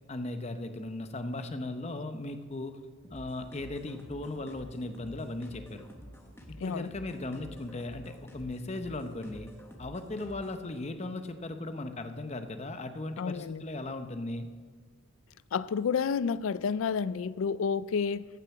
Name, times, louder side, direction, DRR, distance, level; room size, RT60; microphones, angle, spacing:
voice 1, 0.1-2.8 3.1-5.9 6.5-9.5 9.8-14.5, left 2 dB, 30° left, 0.7 m, -37 dB
sound 1, 3.0-10.7, equal, 10° left, 1.1 m, -50 dB
voice 2, 6.6-6.9 13.2-13.6 15.5-18.3, left 6 dB, 80° left, 0.4 m, -30 dB
15.0 x 6.7 x 5.9 m
head